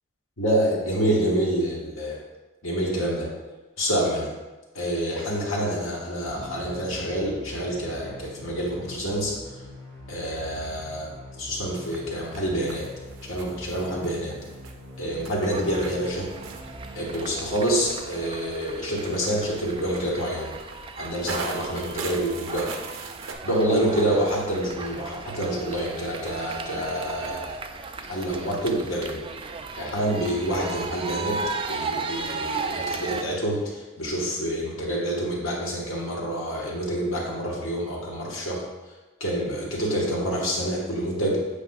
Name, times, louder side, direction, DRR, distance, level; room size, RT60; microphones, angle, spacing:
voice 1, 0.4-2.2 2.6-3.3 3.8-4.3 4.7-9.3 10.1-11.1 11.4-12.9 13.3-14.4 15.0-16.3 16.9-20.5 21.0-22.7 23.4-27.6 28.1-29.2 29.8-31.4 31.7-38.6 39.2-41.4, right 1 dB, 85° left, -3 dB, 1.5 m, -27 dB
sound 1, 6.2-18.2, equal, 30° left, 2.0 m, -43 dB
sound 2, 11.7-23.3, right 4 dB, 70° right, 0.6 m, -40 dB
sound 3, 15.4-33.2, right 4 dB, 25° right, 0.3 m, -36 dB
8.3 x 4.9 x 2.4 m, 1.2 s
head